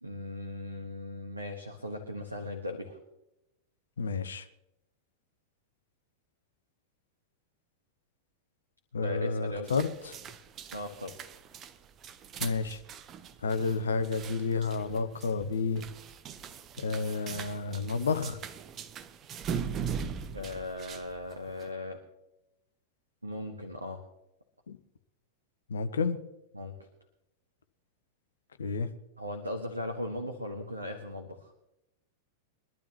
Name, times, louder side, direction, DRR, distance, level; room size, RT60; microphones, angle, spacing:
voice 1, 0.0-3.0 9.0-9.7 10.7-11.1 20.3-22.0 23.2-24.0 26.5-26.7 29.2-31.5, left 1 dB, 85° right, 4 dB, 1.6 m, -38 dB
voice 2, 4.0-4.5 8.9-10.2 12.4-12.8 13.4-15.8 16.8-18.4 20.4-20.5 24.7-24.8 25.7-26.2 28.6-28.9, left 4 dB, 70° left, 10 dB, 1.1 m, -30 dB
sound 1, 9.6-21.7, right 7 dB, 30° right, 1.1 m, -41 dB
23.0 x 12.0 x 3.1 m, 0.89 s
figure-of-eight pair, 90°, 0 cm